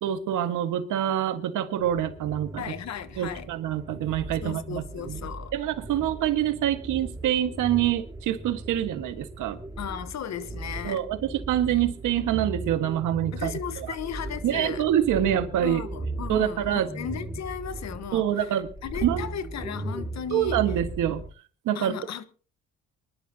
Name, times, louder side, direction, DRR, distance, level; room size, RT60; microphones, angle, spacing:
voice 1, 0.0-2.6 3.2-5.2 5.5-9.6 10.8-13.6 13.9-14.0 14.4-15.8 16.3-16.9 18.1-18.7 19.0-19.3 20.3-21.2 21.7-22.0, right 11 dB, 85° right, 1.8 m, -26 dB
sound 1, 1.8-21.3, right 2 dB, 10° right, 2.3 m, -38 dB
voice 2, 2.6-3.5 4.4-5.5 9.8-11.0 13.3-14.8 15.6-20.6 21.7-22.3, left 8 dB, 65° left, 1.3 m, -36 dB
24.5 x 11.5 x 2.9 m
cardioid pair, 90°, 30 cm